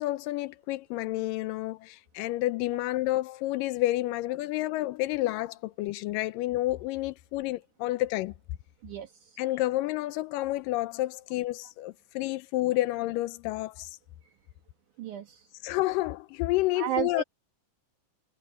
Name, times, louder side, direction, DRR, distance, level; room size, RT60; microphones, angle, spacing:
voice 1, 0.0-8.3 9.4-14.0 15.6-17.2, left 17 dB, 85° left, 2.3 m, -30 dB
voice 2, 8.8-9.4 15.0-15.5 16.8-17.2, right 11 dB, 70° right, 2.5 m, -33 dB
omnidirectional pair, 3.9 m